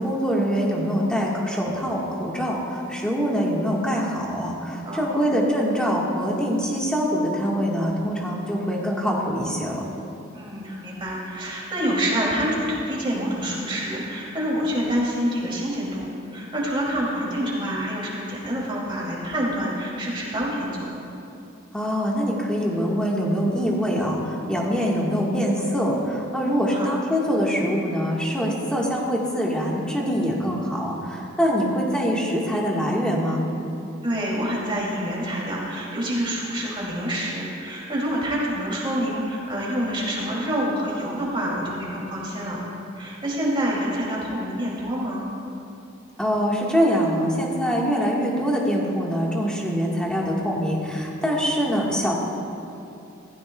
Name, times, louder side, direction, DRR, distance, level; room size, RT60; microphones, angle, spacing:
voice 1, 0.0-9.8 21.7-33.4 46.2-52.1, equal, 5° left, -3 dB, 1.5 m, -24 dB
voice 2, 4.9-5.3 10.3-16.0 16.3-20.9 26.4-26.9 34.0-42.6 43.0-45.2, equal, 25° right, -5 dB, 2.7 m, -27 dB
15.5 x 14.5 x 2.3 m, 2.7 s
head